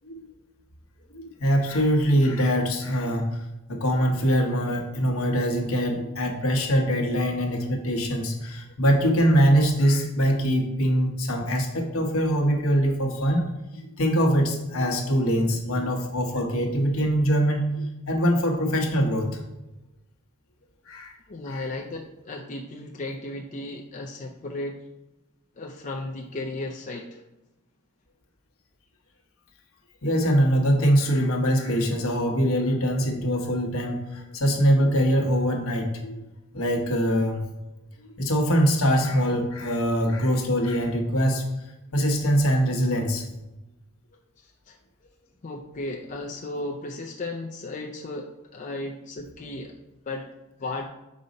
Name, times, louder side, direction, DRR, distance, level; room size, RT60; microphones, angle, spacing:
voice 1, 1.1-3.3 3.7-13.4 13.7-19.3 20.9-21.1 21.5-21.7 30.0-36.2 36.5-37.4 38.2-41.4 41.9-43.3, equal, 70° left, 2 dB, 1.2 m, -23 dB
voice 2, 21.3-24.8 25.6-27.2 44.7-44.8 45.4-49.7 50.1-50.3 50.6-50.9, left 2 dB, 35° left, 1 dB, 0.5 m, -35 dB
5.4 x 4.0 x 5.1 m, 0.99 s
head